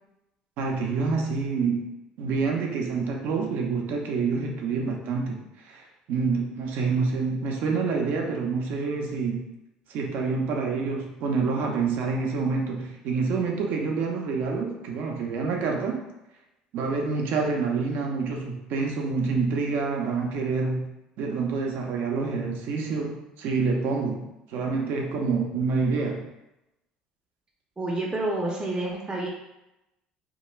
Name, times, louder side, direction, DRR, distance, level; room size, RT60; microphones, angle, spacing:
voice 1, 0.6-1.9 2.2-5.4 5.6-9.4 9.9-16.0 16.7-20.9 21.2-26.2, right 4 dB, 65° right, 1 dB, 0.5 m, -27 dB
voice 2, 27.8-29.3, right 2 dB, 20° right, -3 dB, 0.6 m, -28 dB
2.3 x 2.2 x 3.1 m, 0.92 s
hypercardioid pair, 70°, 3 cm